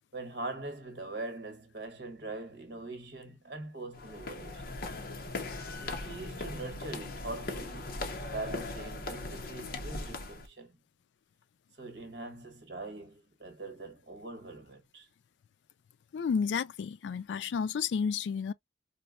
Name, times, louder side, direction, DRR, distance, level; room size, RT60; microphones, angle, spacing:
voice 1, 0.1-4.9 5.8-8.0 8.3-10.8 11.7-15.1, right 2 dB, 65° right, 1.1 m, -42 dB
sound 1, 3.9-10.5, left 2 dB, 55° left, 0.8 m, -39 dB
voice 2, 16.1-18.5, left 6 dB, 90° left, 0.3 m, -31 dB
4.2 x 2.1 x 2.3 m
head